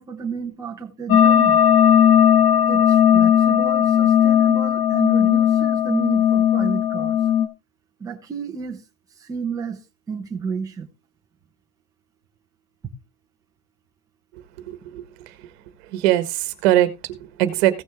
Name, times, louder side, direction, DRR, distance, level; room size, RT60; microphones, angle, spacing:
voice 1, 0.0-1.6 2.7-7.2 8.0-8.8 9.2-9.8 10.1-10.9, right 6 dB, 10° right, 0.9 m, -31 dB
sound 1, 1.1-7.5, left 9 dB, 55° left, 1.9 m, -16 dB
voice 2, 14.7-15.0 15.9-17.8, right 13 dB, 45° right, 1.6 m, -21 dB
16.0 x 6.2 x 3.6 m
supercardioid pair, 175°, 43 cm